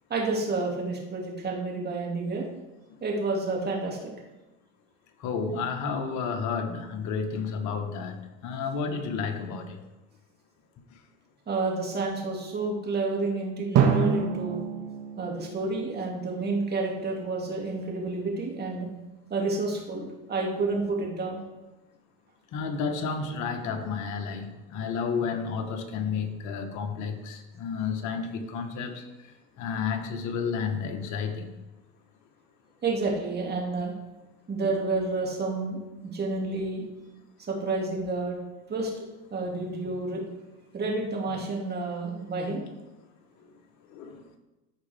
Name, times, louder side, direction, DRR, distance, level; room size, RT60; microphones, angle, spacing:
voice 1, 0.1-2.4 3.0-4.1 11.5-14.6 15.2-18.9 19.3-21.4 32.8-33.9 34.5-36.9 37.5-38.4 38.7-38.9 39.3-40.2 40.7-42.7, right 3 dB, 30° right, -1 dB, 2.4 m, -30 dB
voice 2, 5.2-8.2 8.4-9.8 22.5-31.5 43.9-44.2, left 5 dB, 55° left, 6 dB, 1.4 m, -31 dB
Drum, 13.7-16.6, right 6 dB, 45° right, 1.5 m, -27 dB
14.0 x 5.0 x 3.5 m, 1.1 s
supercardioid pair, 105°, 35 cm